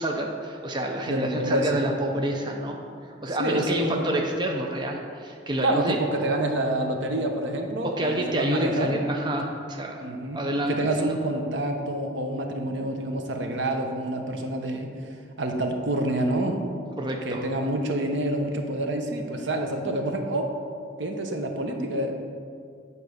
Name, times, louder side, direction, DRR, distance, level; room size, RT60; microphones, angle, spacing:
voice 1, 0.0-2.8 3.2-6.0 7.8-10.0 10.3-11.2 17.0-17.5, right 1 dB, 25° right, 1 dB, 0.6 m, -28 dB
voice 2, 1.1-1.8 3.4-4.1 5.6-9.0 10.0-10.4 10.7-14.9 15.4-16.6 17.2-20.5 21.0-22.2, right 1 dB, 70° right, 4 dB, 0.9 m, -27 dB
9.0 x 4.2 x 6.4 m, 2.3 s
head